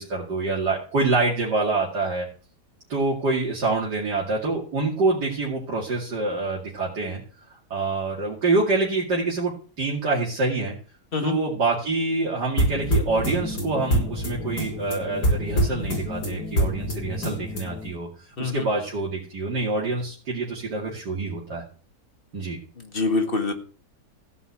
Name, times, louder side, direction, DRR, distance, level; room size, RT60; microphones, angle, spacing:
voice 1, 0.0-2.3 2.9-7.2 7.7-10.7 11.2-21.6 22.3-22.6, right 3 dB, 80° right, -4 dB, 3.0 m, -26 dB
sound 1, 12.6-17.9, equal, 70° left, 5.7 m, -26 dB
voice 2, 22.9-23.5, left 3 dB, 35° left, 5 dB, 2.0 m, -24 dB
15.5 x 5.6 x 8.5 m, 0.42 s
omnidirectional pair, 1.8 m